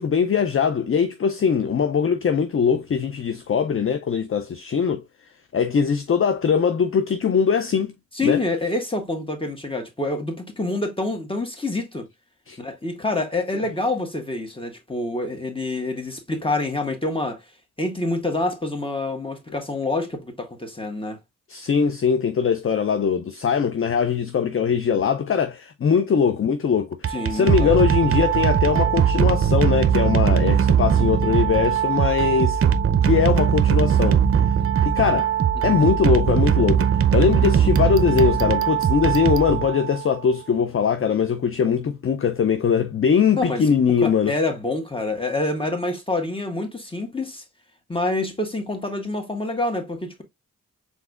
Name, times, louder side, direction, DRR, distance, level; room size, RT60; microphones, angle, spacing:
voice 1, 0.0-5.0 5.5-7.9 8.2-8.4 12.5-12.6 21.5-32.6 33.0-34.2 34.8-35.3 35.6-44.3, left 6 dB, 40° left, 0.5 m, -21 dB
voice 2, 8.1-12.1 12.6-17.4 17.8-21.2 27.1-27.8 35.6-35.8 43.3-43.6 44.0-47.4 47.9-50.2, left 2 dB, 15° left, 1.6 m, -27 dB
sound 1, 26.9-40.1, right 8 dB, 40° right, 0.6 m, -20 dB
4.8 x 3.9 x 2.4 m
cardioid pair, 55°, 34 cm